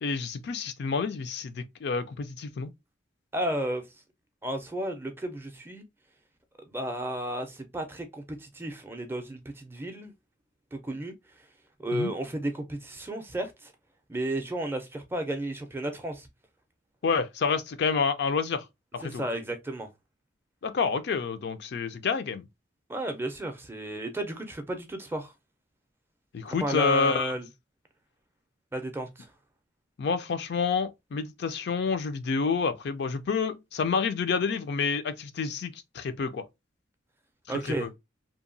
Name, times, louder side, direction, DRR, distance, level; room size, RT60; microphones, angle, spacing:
voice 1, 0.0-2.7 11.9-12.1 17.0-18.7 18.9-19.2 20.6-22.5 26.3-27.3 30.0-36.4 37.8-37.9, left 5 dB, 55° left, 0.4 m, -28 dB
voice 2, 3.3-3.8 4.4-5.8 6.7-10.1 10.7-11.1 11.8-13.7 14.1-16.3 19.0-19.9 22.9-25.3 26.5-27.5 28.7-29.3 37.5-37.9, right 1 dB, 10° right, 0.4 m, -33 dB
2.8 x 2.2 x 2.5 m
head